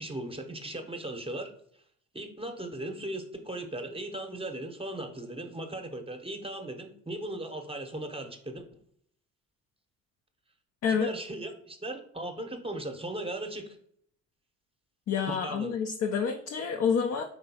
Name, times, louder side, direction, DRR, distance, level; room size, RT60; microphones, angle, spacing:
voice 1, 0.0-1.5 2.1-8.6 10.9-13.8 15.3-15.7, right 1 dB, 15° right, 5 dB, 0.8 m, -37 dB
voice 2, 15.1-17.2, left 6 dB, 45° left, 4 dB, 0.5 m, -28 dB
4.6 x 3.7 x 2.8 m, 0.64 s
hypercardioid pair, 45°, 38 cm